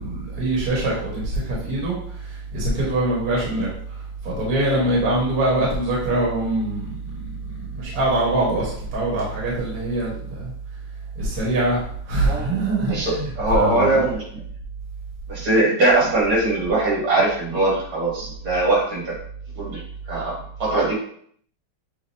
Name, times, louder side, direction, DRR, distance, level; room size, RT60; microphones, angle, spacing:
voice 1, 0.0-1.9 2.5-3.7 4.2-6.9 7.4-10.4 11.2-11.8 12.1-13.2 13.5-14.0, right 2 dB, 45° right, -5 dB, 1.7 m, -23 dB
voice 2, 12.2-14.2 15.3-19.2 19.6-19.8 20.1-20.9, right 2 dB, 65° right, -5 dB, 2.6 m, -21 dB
7.2 x 2.5 x 2.7 m, 0.62 s
omnidirectional pair, 2.3 m